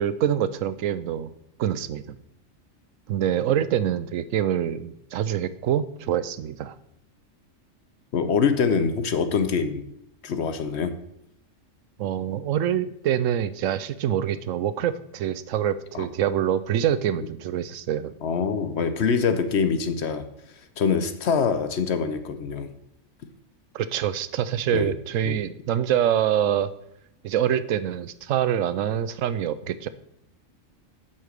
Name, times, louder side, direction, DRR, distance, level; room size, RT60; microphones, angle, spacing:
voice 1, 0.0-1.3 1.6-2.2 3.1-6.7 12.0-18.1 23.7-26.7 27.2-29.9, right 10 dB, 80° right, 14 dB, 1.0 m, -25 dB
voice 2, 8.1-9.9 10.2-10.9 15.9-16.1 18.2-20.3 20.8-22.7 24.7-24.9 25.3-25.4, left 5 dB, 60° left, 10 dB, 1.0 m, -24 dB
7.9 x 5.7 x 6.6 m, 0.76 s
omnidirectional pair, 1.4 m